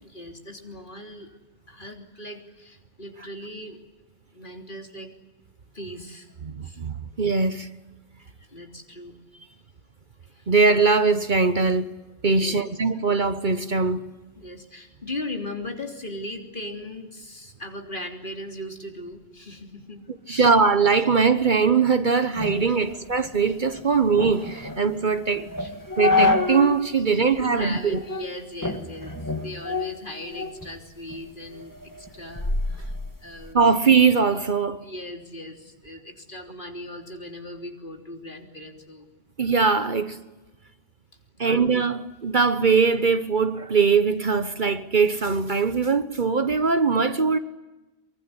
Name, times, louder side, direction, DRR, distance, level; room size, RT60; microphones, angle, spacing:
voice 1, 0.0-1.3 1.7-3.8 4.3-5.1 5.7-6.3 6.6-6.8 8.5-9.2 10.3-10.5 12.3-12.6 14.4-20.0 20.3-20.5 22.7-22.9 25.6-25.7 27.1-29.1 29.4-33.0 33.2-33.6 34.8-39.0 41.4-41.7, left 1 dB, 50° left, 3.5 m, -38 dB
voice 2, 6.5-7.7 10.5-11.9 12.2-14.0 20.3-25.5 26.0-28.0 33.5-34.8 39.4-40.2 41.4-47.4, right 5 dB, 45° right, 1.2 m, -21 dB
sound 1, 22.4-26.8 27.2-27.3 27.9-28.3 28.6-30.7 31.1-33.5, left 3 dB, 15° left, 2.3 m, -28 dB
24.5 x 23.5 x 9.8 m
omnidirectional pair, 1.1 m